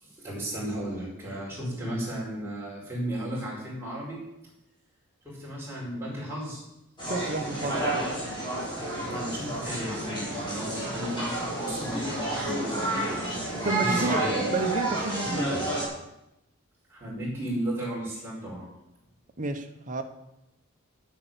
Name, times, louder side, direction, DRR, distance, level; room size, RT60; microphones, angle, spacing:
voice 1, 0.0-4.2 5.2-6.6 9.1-14.5 16.9-18.7, right 1 dB, 10° right, -6 dB, 5.4 m, -34 dB
sound 1, 7.0-15.8, right 1 dB, 20° left, 4.3 m, -30 dB
voice 2, 7.0-8.0 13.5-15.6 19.4-20.0, right 2 dB, 35° right, 5 dB, 1.1 m, -31 dB
9.5 x 8.1 x 7.5 m, 0.88 s
head